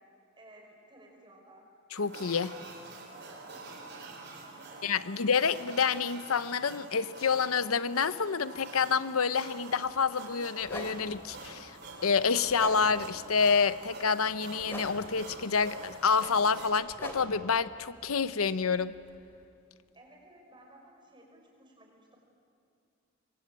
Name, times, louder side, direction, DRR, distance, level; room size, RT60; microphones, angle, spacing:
voice 1, 0.4-1.7 3.4-4.1 4.4-5.2 19.9-22.2, right 1 dB, 20° right, 0 dB, 5.6 m, -56 dB
voice 2, 1.9-2.5 4.8-11.8 12.0-18.9, left 5 dB, 85° left, 14 dB, 0.8 m, -28 dB
sound 1, 1.9-16.7, right 3 dB, 50° right, 4.5 m, -47 dB
sound 2, 9.8-10.0 10.6-19.4, left 1 dB, 10° left, 3.0 m, -46 dB
25.5 x 23.5 x 9.0 m, 2.6 s
head